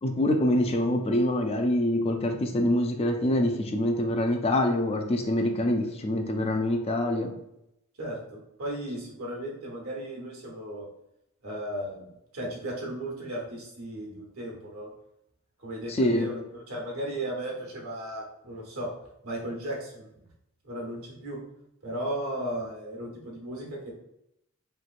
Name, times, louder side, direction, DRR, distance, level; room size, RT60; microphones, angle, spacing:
voice 1, 0.0-7.3 15.9-16.3, left 1 dB, 30° left, 4 dB, 0.4 m, -25 dB
voice 2, 8.0-10.9 11.4-12.1 12.3-14.9 15.6-18.9 19.2-20.1 20.6-21.4 21.8-23.9, right 1 dB, 85° right, -1 dB, 1.0 m, -35 dB
3.0 x 3.0 x 2.4 m, 0.81 s
head